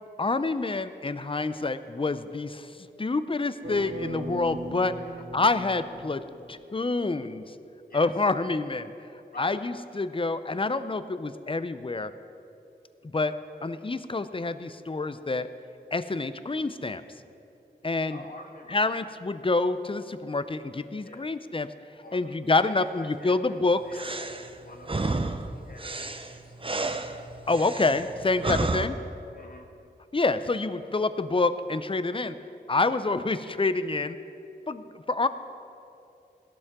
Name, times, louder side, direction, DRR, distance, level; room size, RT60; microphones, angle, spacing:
voice 1, 0.2-2.7 3.0-4.9 5.3-6.2 6.5-7.4 7.9-8.9 9.4-12.1 13.0-13.3 13.6-15.5 15.9-17.0 17.8-18.2 18.7-21.7 22.1-23.8 27.5-28.9 30.1-32.3 32.7-34.2 34.7-35.3, left 3 dB, 30° left, 12 dB, 0.6 m, -27 dB
sound 1, 3.6-6.7, right 1 dB, 75° right, 1.6 m, -39 dB
voice 2, 18.1-19.0 21.0-21.3 22.0-24.1 24.6-27.0 28.6-28.8 29.3-29.7, left 1 dB, 50° left, 1 dB, 1.5 m, -48 dB
sound 2, 23.9-28.9, right 2 dB, 30° right, 0.7 m, -31 dB
17.5 x 12.0 x 3.7 m, 2.7 s
cardioid pair, 40°, 19 cm